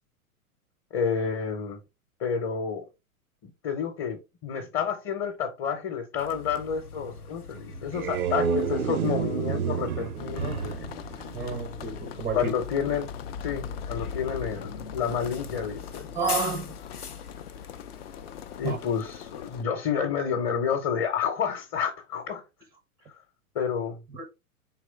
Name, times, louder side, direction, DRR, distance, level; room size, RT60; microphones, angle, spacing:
voice 1, 0.9-1.8 2.2-2.9 3.4-10.9 12.3-13.1 13.4-16.1 18.6-22.4 23.5-24.0, left 7 dB, 30° left, 0.9 m, -30 dB
Bus, 6.2-19.5, left 5 dB, 90° left, 0.6 m, -42 dB
sound 1, 7.7-12.0, right 7 dB, 75° right, 0.6 m, -30 dB
sound 2, 10.2-19.6, left 8 dB, 45° left, 0.5 m, -41 dB
voice 2, 11.3-12.5 16.1-16.8 18.6-18.8 24.1-24.2, right 4 dB, 5° right, 0.5 m, -30 dB
4.9 x 3.2 x 3.2 m
figure-of-eight pair, 100°, 44 cm